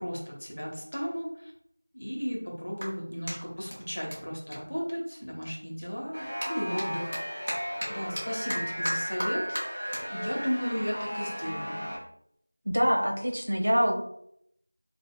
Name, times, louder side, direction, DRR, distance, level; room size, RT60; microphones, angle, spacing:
voice 1, 0.0-1.5 1.9-7.2 7.5-9.6 10.1-11.8, equal, 45° left, -2 dB, 1.1 m, -35 dB
Clapping, 1.4-5.5 5.8-12.4, equal, 35° right, 1.0 m, -40 dB
sound 1, 6.1-12.0, equal, 5° right, 1.2 m, -35 dB
voice 2, 12.7-14.0, equal, 65° right, 2 dB, 0.8 m, -25 dB
4.7 x 2.7 x 2.2 m, 0.72 s
figure-of-eight pair, 180°, 0 cm